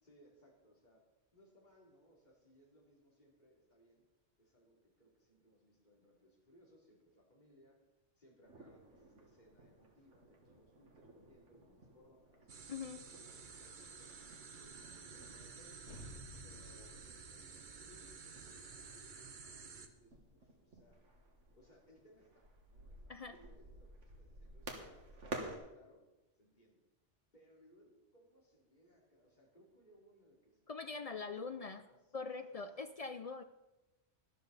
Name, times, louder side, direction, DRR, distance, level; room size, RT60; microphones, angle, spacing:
voice 1, 0.0-1.0 1.3-4.0 4.4-7.8 8.2-12.5 13.0-14.2 14.6-16.1 16.4-21.0 21.5-26.0 26.4-26.8 27.3-32.8, equal, 40° left, -2 dB, 3.0 m, -67 dB
sound 1, 8.4-25.6, right 2 dB, 85° right, 2.1 m, -54 dB
sound 2, 12.5-19.9, right 5 dB, 45° right, 1.0 m, -52 dB
voice 2, 12.7-13.0 23.1-23.4 30.7-31.8 32.1-33.4, left 4 dB, 55° left, 9 dB, 0.4 m, -43 dB
sound 3, 15.9-20.7, left 1 dB, 70° left, 1.9 m, -57 dB
12.5 x 12.0 x 4.1 m, 1.0 s
omnidirectional pair, 1.2 m